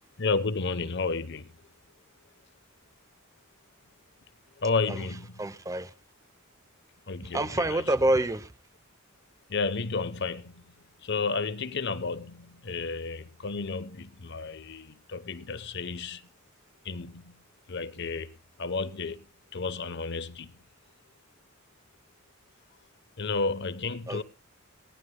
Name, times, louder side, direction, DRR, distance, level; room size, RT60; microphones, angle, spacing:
voice 1, 0.2-1.5 4.6-5.5 7.1-7.8 9.5-10.7 11.0-16.3 16.8-17.4 17.7-19.3 19.5-20.5 23.2-24.2, left 4 dB, 55° left, 0.9 m, -32 dB
voice 2, 5.4-5.9 7.3-8.5 24.1-24.2, right 1 dB, 15° right, 0.6 m, -27 dB
21.0 x 17.0 x 2.2 m
head